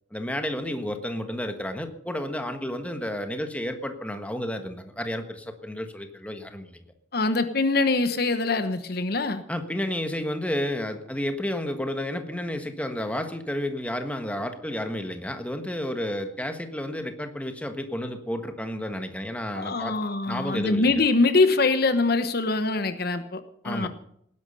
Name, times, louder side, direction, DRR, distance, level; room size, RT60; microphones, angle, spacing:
voice 1, 0.1-6.8 9.5-20.0 20.3-20.9 23.6-23.9, left 1 dB, 5° left, 6 dB, 1.4 m, -31 dB
voice 2, 7.1-9.4 19.5-23.9, left 3 dB, 55° left, 10 dB, 1.1 m, -23 dB
18.5 x 11.0 x 5.6 m, 0.70 s
head